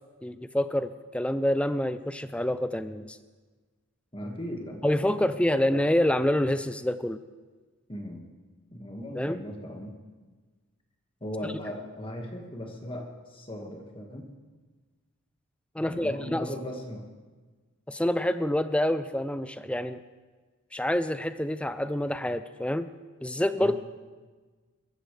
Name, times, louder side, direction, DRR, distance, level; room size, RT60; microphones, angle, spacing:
voice 1, 0.2-3.2 4.8-7.2 9.2-9.4 15.7-16.5 17.9-20.0 20.7-22.9 23.2-23.8, left 1 dB, 5° left, 11 dB, 0.4 m, -27 dB
voice 2, 4.1-5.7 7.9-8.2 8.7-10.0 11.2-14.3 15.8-17.1 23.6-23.8, equal, 25° left, 2 dB, 1.7 m, -38 dB
21.5 x 14.5 x 3.3 m, 1.4 s
head